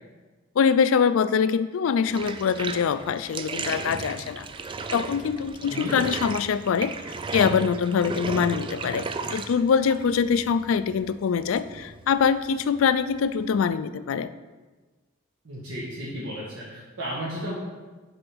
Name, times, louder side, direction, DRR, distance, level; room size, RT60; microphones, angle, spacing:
voice 1, 0.6-4.5 4.9-6.9 7.3-14.3, left 6 dB, 65° left, 13 dB, 0.3 m, -24 dB
Bathtub (filling or washing), 2.1-13.7, right 4 dB, 25° right, 0.3 m, -35 dB
voice 2, 15.4-17.5, equal, 70° right, -7 dB, 1.5 m, -34 dB
6.7 x 4.0 x 6.1 m, 1.3 s
head